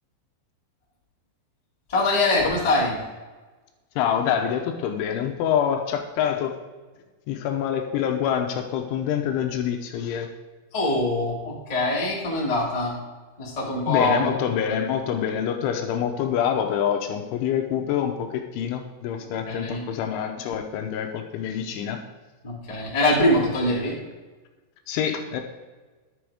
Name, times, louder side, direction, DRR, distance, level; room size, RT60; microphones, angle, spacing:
voice 1, 1.9-3.0 10.7-12.9 13.4-14.3 19.4-19.8 22.4-23.9, left 2 dB, 15° left, -4 dB, 1.2 m, -23 dB
voice 2, 4.0-6.5 7.3-10.3 13.9-22.0 24.9-25.4, left 8 dB, 80° left, 4 dB, 3.2 m, -26 dB
12.0 x 7.0 x 4.9 m, 1.3 s
omnidirectional pair, 5.7 m